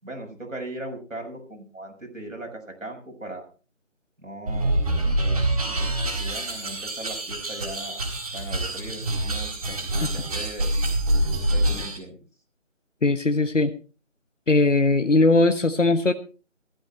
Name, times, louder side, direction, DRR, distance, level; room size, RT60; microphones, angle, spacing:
voice 1, 0.0-3.5 4.2-4.8 5.7-8.0 8.3-10.7 11.5-12.2, right 1 dB, 85° right, 0 dB, 6.4 m, -39 dB
sound 1, 4.5-12.0, right 1 dB, 30° right, 4.1 m, -26 dB
voice 2, 13.0-13.7 14.5-16.1, left 2 dB, 70° left, 8 dB, 1.3 m, -19 dB
15.5 x 13.0 x 4.3 m, 0.36 s
figure-of-eight pair, 160°, 38 cm